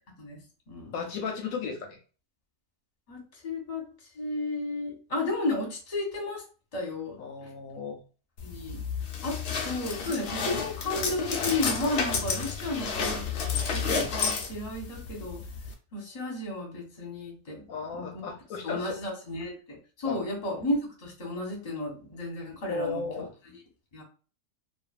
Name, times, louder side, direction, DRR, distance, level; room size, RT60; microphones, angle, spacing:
voice 1, 0.9-2.0 7.2-8.0 17.7-19.0 20.0-20.2 22.7-23.3, left 5 dB, 70° left, 3 dB, 0.9 m, -35 dB
voice 2, 3.4-3.8 4.2-6.4 6.7-7.2 8.4-8.8 9.2-9.4 9.6-13.3 13.7-15.4 15.9-17.6 17.9-18.2 18.6-23.1 23.9-24.0, left 2 dB, 30° left, 0 dB, 0.8 m, -33 dB
sound 1, 8.4-15.7, left 5 dB, 85° left, 0.5 m, -31 dB
2.5 x 2.5 x 2.3 m, 0.36 s
omnidirectional pair, 1.7 m